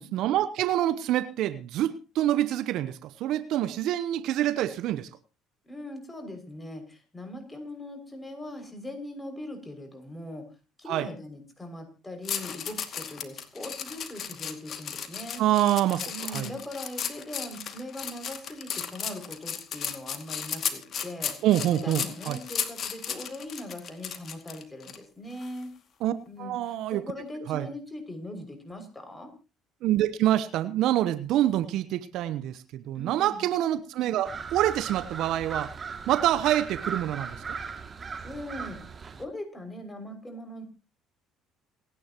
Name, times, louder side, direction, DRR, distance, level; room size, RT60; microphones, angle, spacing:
voice 1, 0.0-5.1 10.9-11.1 15.4-16.5 21.4-22.4 26.0-26.1 26.4-27.0 27.5-27.7 29.8-35.7 36.1-37.4, right 13 dB, 65° right, 13 dB, 1.0 m, -26 dB
voice 2, 5.6-10.4 10.8-15.4 16.1-21.3 21.7-25.7 26.3-29.3 32.9-33.5 38.2-38.8 39.2-40.6, left 1 dB, 15° left, 5 dB, 6.3 m, -40 dB
sound 1, 12.2-25.0 25.4-25.6, left 7 dB, 50° left, 2.3 m, -35 dB
sound 2, 34.3-39.2, right 5 dB, 35° right, 2.4 m, -37 dB
28.0 x 10.0 x 3.0 m, 0.31 s
hypercardioid pair, 60°, 0 cm